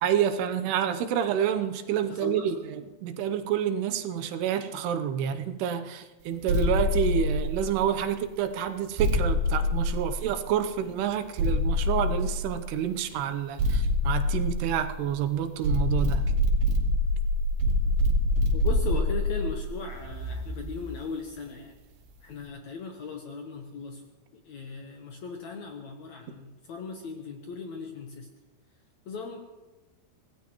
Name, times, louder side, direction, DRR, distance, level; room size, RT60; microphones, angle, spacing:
voice 1, 0.0-16.4, right 9 dB, 90° right, 8 dB, 2.9 m, -28 dB
voice 2, 2.1-2.5 18.5-21.7 22.2-24.0 24.5-28.3 29.1-29.4, left 4 dB, 70° left, 3 dB, 1.8 m, -38 dB
sound 1, 6.5-8.0 9.0-10.6 11.4-12.7 13.6-15.2 15.6-20.9, left 1 dB, 70° right, 3.0 m, -26 dB
25.5 x 17.0 x 3.1 m, 1.2 s
omnidirectional pair, 4.5 m